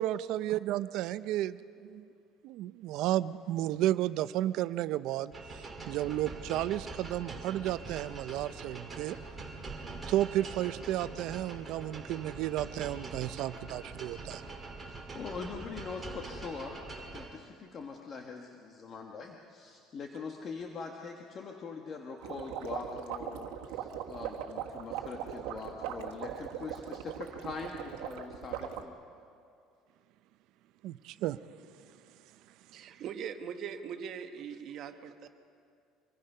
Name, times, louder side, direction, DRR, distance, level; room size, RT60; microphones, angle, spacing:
voice 1, 0.0-2.1 2.4-9.2 10.1-14.4 30.8-31.4, right 13 dB, 65° right, 14 dB, 0.6 m, -33 dB
sound 1, 5.3-17.3, right 3 dB, 20° right, 2.0 m, -44 dB
voice 2, 14.8-29.0, left 4 dB, 35° left, 2 dB, 1.3 m, -43 dB
sound 2, 22.2-28.8, right 10 dB, 80° right, 1.5 m, -39 dB
voice 3, 32.7-35.3, right 7 dB, 45° right, 7 dB, 1.2 m, -41 dB
25.5 x 19.5 x 5.5 m, 2.4 s
cardioid pair, 150°, 0 cm